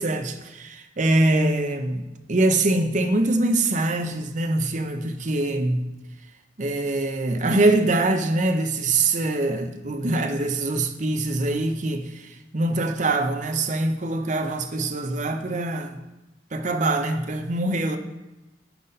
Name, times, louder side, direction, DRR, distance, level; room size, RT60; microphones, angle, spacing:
voice 1, 0.0-5.9 6.6-16.0 16.5-18.0, right 2 dB, 45° right, 0.7 m, -24 dB
9.1 x 4.1 x 5.3 m
head